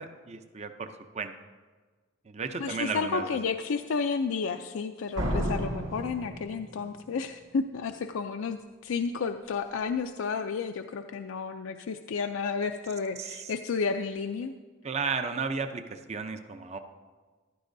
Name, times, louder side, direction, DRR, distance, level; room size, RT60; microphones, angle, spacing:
voice 1, 0.0-1.3 2.3-3.3 13.2-13.5 14.8-16.8, right 5 dB, 30° right, 8 dB, 0.5 m, -34 dB
voice 2, 2.6-14.5, left 5 dB, 70° left, 6 dB, 0.4 m, -31 dB
Slam, 5.2-7.1, equal, 60° right, 2.1 m, -32 dB
15.0 x 12.0 x 2.6 m, 1.4 s
head